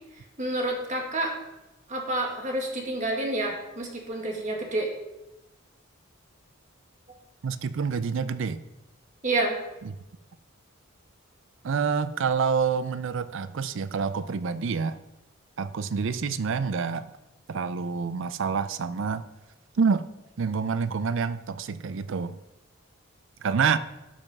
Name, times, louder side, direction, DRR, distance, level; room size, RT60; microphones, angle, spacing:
voice 1, 0.4-1.3 1.9-4.9 9.2-9.6, right 2 dB, 35° right, 1 dB, 1.8 m, -28 dB
voice 2, 7.4-8.6 9.8-10.0 11.6-15.0 15.6-17.1 17.5-19.2 19.7-20.1 20.4-22.4 23.4-23.8, right 5 dB, 65° right, 13 dB, 0.4 m, -27 dB
12.0 x 5.5 x 5.3 m, 0.97 s
head